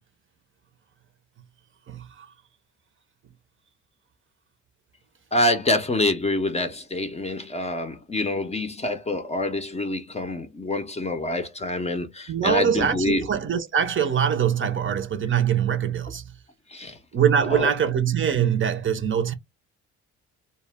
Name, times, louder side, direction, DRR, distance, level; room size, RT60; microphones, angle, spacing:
voice 1, 1.9-2.3 12.3-16.2 17.1-19.3, right 8 dB, 40° right, 0.5 m, -23 dB
voice 2, 5.3-13.3 16.7-17.0 17.5-17.7, left 1 dB, 20° left, 0.5 m, -26 dB
2.1 x 2.1 x 3.3 m
cardioid pair, 90°, 30 cm